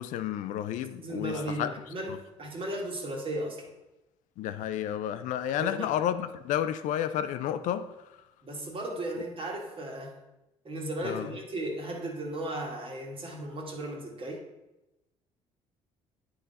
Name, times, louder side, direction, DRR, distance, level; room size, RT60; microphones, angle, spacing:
voice 1, 0.0-1.7 2.1-2.2 4.4-7.9 11.0-11.3, left 10 dB, 70° left, 0.5 m, -31 dB
voice 2, 1.0-3.7 5.5-5.9 8.4-10.2 10.6-14.4, right 1 dB, 40° right, 1.7 m, -36 dB
8.8 x 3.9 x 4.1 m
supercardioid pair, 65°, 13 cm